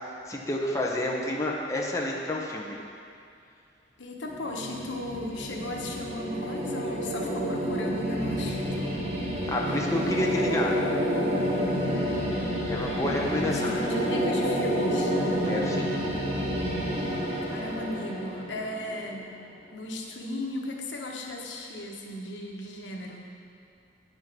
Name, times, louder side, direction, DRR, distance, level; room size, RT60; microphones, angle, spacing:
voice 1, 0.3-2.8 9.5-10.7 12.7-13.8 15.4-15.9, left 1 dB, 20° left, -2 dB, 0.8 m, -29 dB
voice 2, 4.0-9.0 9.7-9.8 13.7-15.1 17.4-19.3 19.7-23.3, left 1 dB, 90° left, 0 dB, 1.1 m, -36 dB
sound 1, 4.3-19.3, equal, 35° right, 1.7 m, -29 dB
9.3 x 5.6 x 6.0 m, 2.4 s
head